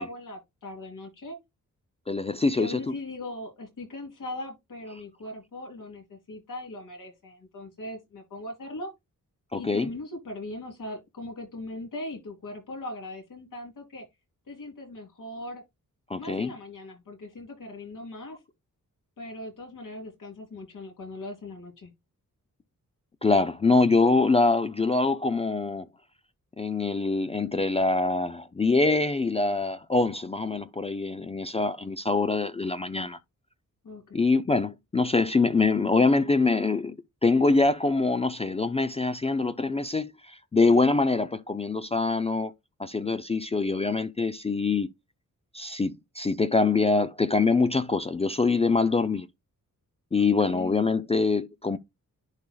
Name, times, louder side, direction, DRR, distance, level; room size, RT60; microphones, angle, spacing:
voice 1, 0.0-1.4 2.5-8.9 9.5-14.0 14.5-15.6 16.1-18.4 19.2-21.9 33.8-34.3 40.7-41.0 50.2-50.9, left 2 dB, 70° left, 3.4 m, -39 dB
voice 2, 2.1-2.8 9.5-9.9 16.1-16.5 23.2-25.9 26.6-33.2 34.1-37.0 37.2-42.5 42.8-44.9 45.5-49.3 50.1-51.8, left 3 dB, 20° left, 0.4 m, -24 dB
10.5 x 4.7 x 2.3 m
wide cardioid pair, 150°, 32 cm